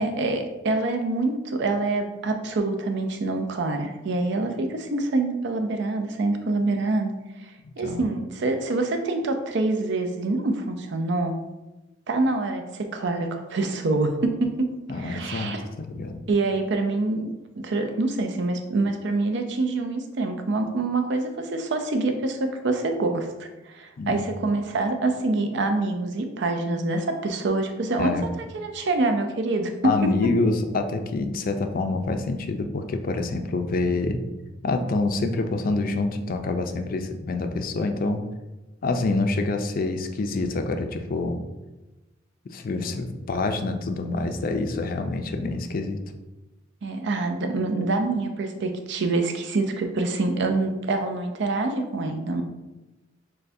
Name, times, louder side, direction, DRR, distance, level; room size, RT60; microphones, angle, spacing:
voice 1, 0.0-7.1 7.8-11.3 12.1-14.7 14.9-15.7 16.3-28.1 28.5-29.9 46.8-52.4, right 2 dB, 65° right, 5 dB, 0.5 m, -26 dB
voice 2, 14.9-16.2 24.0-24.2 28.0-28.3 29.8-34.2 34.6-38.2 38.8-41.4 42.5-46.0, left 3 dB, 50° left, 6 dB, 0.4 m, -26 dB
6.4 x 2.2 x 2.6 m, 1.1 s
head